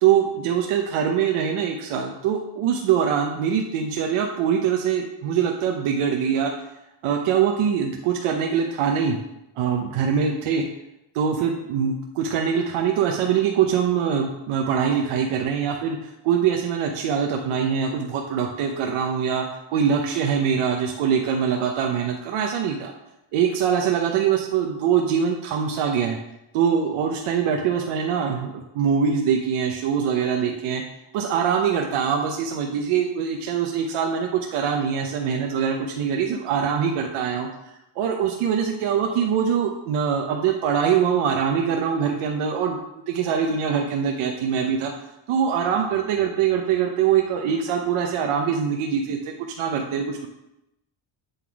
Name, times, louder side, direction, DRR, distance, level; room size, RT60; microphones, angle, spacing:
voice 1, 0.0-6.5 7.0-9.2 9.6-10.6 11.1-19.4 19.7-22.9 23.3-26.2 26.5-30.8 31.1-37.5 38.0-44.9 45.3-50.3, right 7 dB, 85° right, 1 dB, 0.9 m, -23 dB
8.2 x 3.9 x 4.6 m, 0.90 s
cardioid pair, 130°, 49 cm